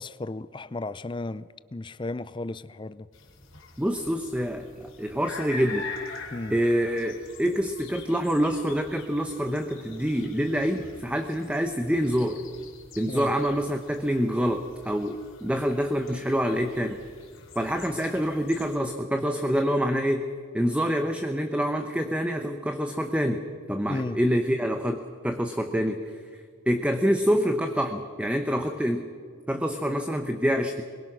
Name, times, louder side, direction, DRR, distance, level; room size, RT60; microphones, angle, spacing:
voice 1, 0.0-3.1 6.3-6.6 13.1-13.3 23.9-24.2, left 2 dB, 25° left, 0.5 m, -34 dB
sound 1, 3.1-18.8, left 4 dB, 80° left, 4.0 m, -45 dB
voice 2, 3.8-6.2 6.5-12.4 13.0-17.0 17.6-20.3 20.5-23.4 23.7-29.1 29.5-30.8, equal, 5° right, 0.8 m, -26 dB
23.0 x 22.0 x 6.1 m
head